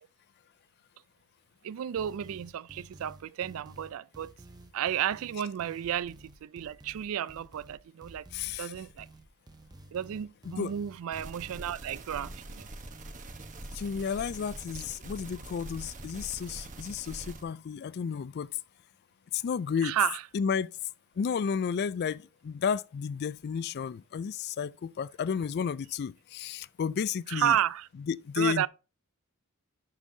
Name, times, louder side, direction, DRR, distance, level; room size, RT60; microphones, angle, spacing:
voice 1, 1.6-4.3 4.7-8.3 8.6-9.1 9.9-12.7 19.8-20.2 27.3-27.9 28.4-28.7, right 10 dB, 65° right, 0.3 m, -32 dB
sound 1, 2.0-17.4, right 1 dB, 20° right, 0.6 m, -52 dB
voice 2, 8.3-8.7 10.6-10.7 13.7-18.5 19.3-20.0 20.3-20.7 21.2-27.6 28.1-28.7, left 6 dB, 45° left, 0.3 m, -32 dB
sound 2, 11.1-17.4, right 2 dB, 35° right, 0.9 m, -44 dB
11.5 x 5.5 x 2.7 m
head